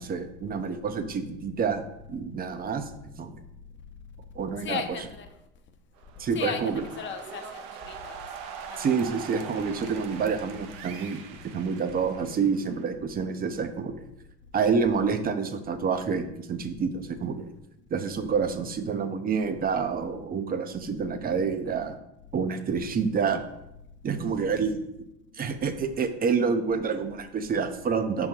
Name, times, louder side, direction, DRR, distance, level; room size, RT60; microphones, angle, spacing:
voice 1, 0.0-2.9 3.2-3.3 4.3-4.8 6.2-6.8 8.8-14.0 14.5-17.5 17.9-21.9 22.3-23.4 24.0-24.9 25.3-28.3, right 5 dB, 30° right, 9 dB, 0.6 m, -28 dB
voice 2, 4.6-5.3 6.3-6.6 7.0-8.2 8.7-8.9, left 7 dB, 40° left, 6 dB, 0.9 m, -35 dB
sound 1, 6.0-12.8, right 7 dB, 70° right, 0.8 m, -42 dB
5.7 x 3.9 x 4.5 m, 0.85 s
hypercardioid pair, 85°, 30 cm